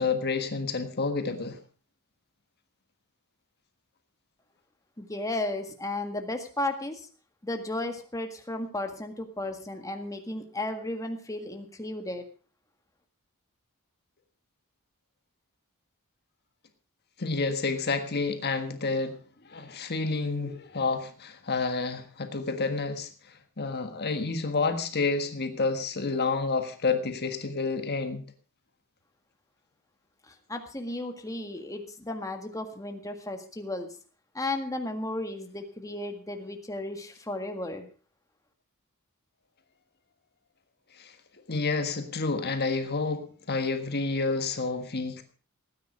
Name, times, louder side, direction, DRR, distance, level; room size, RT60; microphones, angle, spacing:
voice 1, 0.0-1.6 17.2-19.2 19.5-23.1 23.6-28.2 41.0-41.1 41.5-45.2, left 4 dB, 45° left, 7 dB, 1.5 m, -29 dB
voice 2, 5.0-7.1 7.4-12.2 30.3-34.0 34.3-37.9, left 2 dB, 15° left, 5 dB, 1.7 m, -34 dB
17.5 x 9.7 x 5.0 m, 0.39 s
head